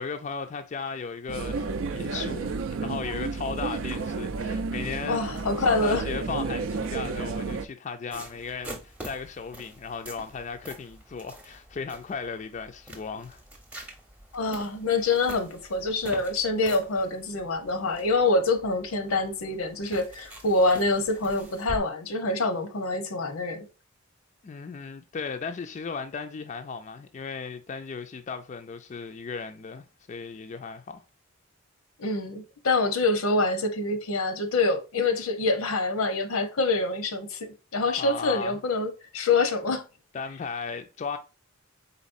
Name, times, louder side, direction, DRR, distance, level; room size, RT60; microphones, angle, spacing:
voice 1, 0.0-2.6 2.8-5.3 5.6-13.4 24.4-31.0 38.0-38.6 40.1-41.2, left 5 dB, 35° left, 0.3 m, -36 dB
sound 1, 1.3-7.6, right 4 dB, 70° right, 0.4 m, -31 dB
voice 2, 5.1-6.0 14.3-23.6 32.0-39.8, left 3 dB, 90° left, 0.8 m, -26 dB
sound 2, 8.1-21.8, right 1 dB, 5° right, 0.7 m, -45 dB
4.1 x 4.1 x 2.5 m
head